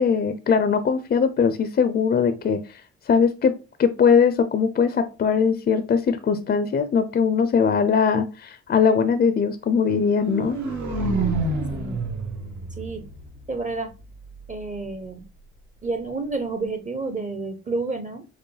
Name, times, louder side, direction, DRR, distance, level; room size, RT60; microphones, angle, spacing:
voice 1, 0.0-2.8 3.1-3.5 3.8-10.6, left 6 dB, 35° left, 0.4 m, -20 dB
sound 1, 10.0-14.0, right 3 dB, 75° right, 1.2 m, -28 dB
voice 2, 11.7-12.0 12.8-13.1 13.5-13.9 14.5-15.2 15.8-18.3, right 3 dB, 25° right, 0.5 m, -30 dB
4.6 x 2.1 x 3.2 m
cardioid pair, 90°, 30 cm